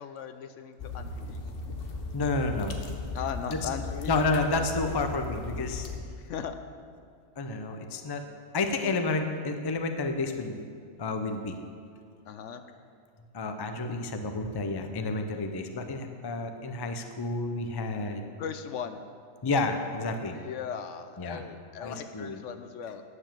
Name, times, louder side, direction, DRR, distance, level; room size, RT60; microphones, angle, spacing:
voice 1, 0.0-1.4 3.1-4.2 6.2-6.6 12.3-12.6 18.4-19.0 20.3-23.0, left 7 dB, 70° left, 9 dB, 0.9 m, -38 dB
sound 1, 0.8-6.0, left 3 dB, 45° left, 1.1 m, -37 dB
voice 2, 2.1-2.8 4.1-5.9 7.4-8.2 8.5-10.6 11.0-11.6 13.3-18.2 19.4-20.4 21.2-21.4 21.8-22.4, left 3 dB, 30° left, 6 dB, 0.5 m, -30 dB
9.7 x 7.1 x 7.5 m, 2.3 s
omnidirectional pair, 1.4 m